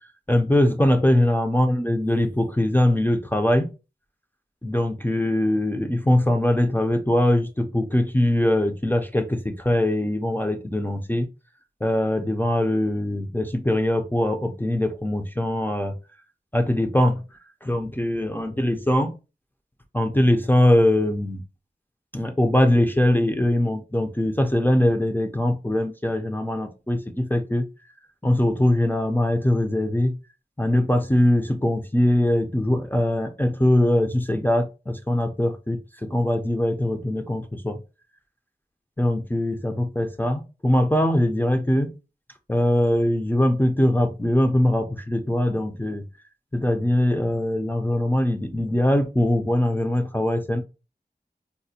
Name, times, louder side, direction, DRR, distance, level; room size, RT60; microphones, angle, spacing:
voice 1, 0.3-3.7 4.6-11.3 11.8-16.0 16.5-17.2 17.6-19.1 19.9-21.4 22.1-27.7 28.2-30.1 30.6-37.8 39.0-41.9 42.5-46.1 46.5-50.6, left 1 dB, 10° left, 0.4 m, -22 dB
4.1 x 2.1 x 2.7 m
wide cardioid pair, 45°, 17 cm